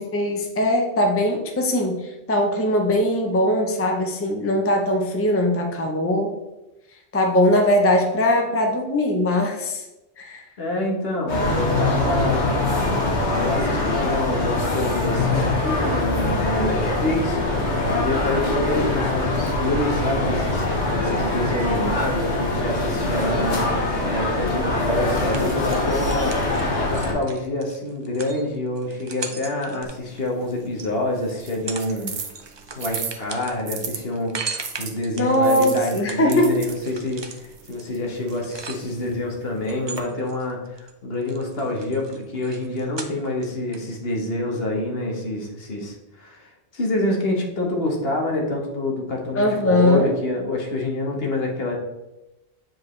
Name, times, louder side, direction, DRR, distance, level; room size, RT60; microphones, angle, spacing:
voice 1, 0.0-6.4 7.1-9.8 10.2-10.5 16.6-16.7 24.0-24.1 35.2-36.7 49.3-50.1, left 1 dB, 15° left, 2 dB, 0.7 m, -21 dB
voice 2, 10.6-12.6 13.4-23.8 24.1-26.4 26.8-32.1 32.8-51.7, left 1 dB, 60° left, 1 dB, 1.4 m, -27 dB
sound 1, 11.3-27.1, left 2 dB, 80° left, 1.7 m, -23 dB
sound 2, 25.1-30.9 31.4-32.0 32.2-39.2 39.6-40.9 41.2-43.5 43.7-43.8, right 4 dB, 35° right, 0.4 m, -38 dB
sound 3, 29.8-34.0 34.6-40.0, right 5 dB, 85° right, 1.2 m, -37 dB
7.8 x 4.7 x 3.2 m, 0.99 s
omnidirectional pair, 1.1 m